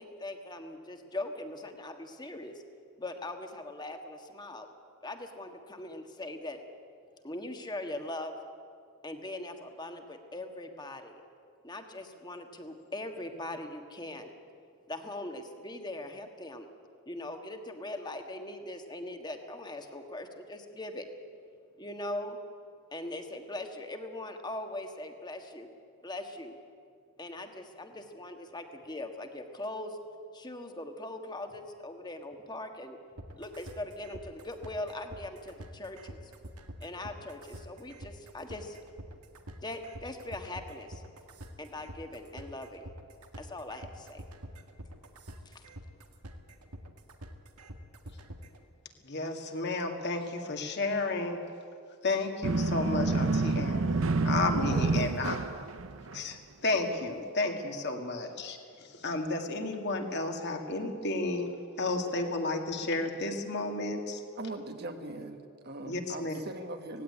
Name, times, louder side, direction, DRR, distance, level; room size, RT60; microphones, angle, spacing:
voice 1, 0.0-2.6 3.0-4.7 5.0-6.6 7.2-8.3 9.0-11.2 11.6-14.3 14.9-16.7 17.0-21.1 21.8-22.4 22.9-25.7 26.0-26.6 27.2-30.0 30.3-33.0 33.3-36.3 36.8-38.8 39.6-41.0 41.6-42.9 43.4-44.3 45.4-45.6, left 1 dB, 20° left, 5 dB, 1.5 m, -41 dB
sound 1, 33.2-48.6, right 1 dB, 90° right, 1.9 m, -46 dB
voice 2, 49.0-51.4 52.0-55.4 56.1-56.4 56.6-61.5 61.8-64.2 65.9-66.3, left 2 dB, 50° left, 3 dB, 2.1 m, -32 dB
sound 2, 52.4-56.3, right 3 dB, 60° right, 0.7 m, -28 dB
voice 3, 64.4-67.0, right 2 dB, 45° right, 6 dB, 1.4 m, -40 dB
17.5 x 16.5 x 9.8 m, 2.3 s
head